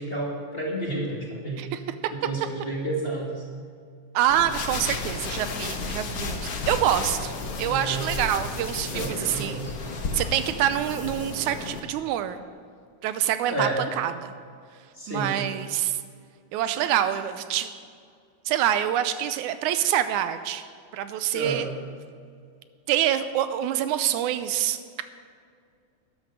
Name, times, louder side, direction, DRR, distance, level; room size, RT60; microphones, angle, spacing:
voice 1, 0.0-1.7 2.1-3.5 7.6-8.0 8.9-9.7 13.5-13.8 14.9-15.3 21.3-21.7, right 2 dB, 20° left, -3 dB, 2.1 m, -31 dB
voice 2, 1.6-2.1 4.1-12.4 13.0-14.3 14.7-16.0 16.5-17.8 18.5-20.7 20.9-21.7 22.9-25.0, right 11 dB, 85° right, 11 dB, 2.1 m, -26 dB
sound 1, 4.3-11.8, left 3 dB, 90° left, 0.8 m, -33 dB
12.5 x 10.5 x 6.3 m, 2.2 s
omnidirectional pair, 3.4 m